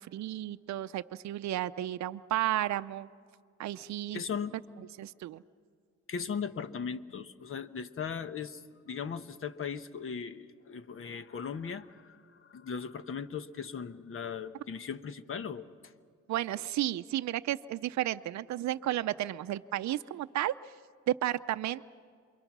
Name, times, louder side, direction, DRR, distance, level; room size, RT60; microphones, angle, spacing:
voice 1, 0.0-3.1 3.6-4.2 4.8-5.4 16.3-20.5 21.1-21.9, right 13 dB, 65° right, 10 dB, 0.6 m, -33 dB
voice 2, 4.1-4.5 6.1-15.7, left 6 dB, 45° left, 11 dB, 1.1 m, -38 dB
28.0 x 23.0 x 6.1 m, 2.1 s
cardioid pair, 90°, 30 cm